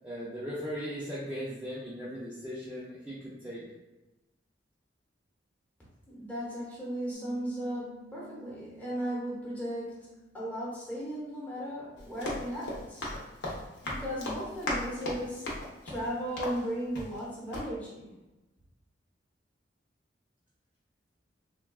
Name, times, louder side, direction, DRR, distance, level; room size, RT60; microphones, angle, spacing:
voice 1, 0.0-3.6, equal, 10° right, -8 dB, 0.4 m, -38 dB
voice 2, 6.1-9.9 10.3-13.1 13.8-15.5 15.8-18.1, equal, 10° left, -7 dB, 1.0 m, -36 dB
Piano, 7.1-12.2, right 4 dB, 50° right, 0.7 m, -54 dB
Run, 12.0-17.3 17.5-17.7, left 1 dB, 65° left, 0.7 m, -37 dB
3.5 x 2.2 x 2.3 m, 1.0 s
head